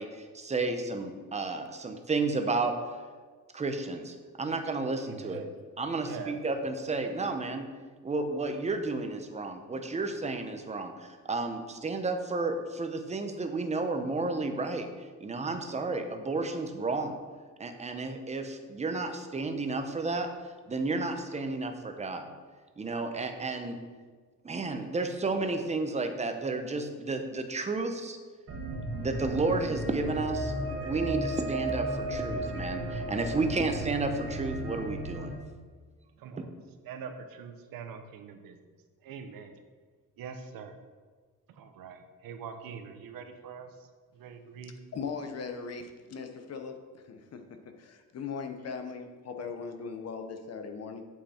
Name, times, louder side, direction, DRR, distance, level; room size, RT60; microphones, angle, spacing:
voice 1, 0.0-2.7 3.5-5.4 5.8-7.7 8.0-17.1 17.6-20.3 20.7-22.3 22.8-23.8 24.4-28.2 29.0-30.5 30.8-35.3, right 3 dB, 20° right, 6 dB, 0.8 m, -32 dB
voice 2, 5.0-5.6 6.0-6.4 36.2-38.6 39.0-39.6 40.2-40.8 41.5-43.9 44.1-44.8 49.4-49.5 49.8-49.9, right 6 dB, 85° right, 7 dB, 1.0 m, -44 dB
sound 1, 28.5-35.3, right 1 dB, 40° right, 1.7 m, -34 dB
voice 3, 44.9-46.8 47.1-47.4 47.8-51.0, left 5 dB, 50° left, 6 dB, 1.0 m, -39 dB
8.7 x 7.7 x 4.4 m, 1.5 s
cardioid pair, 155°, 34 cm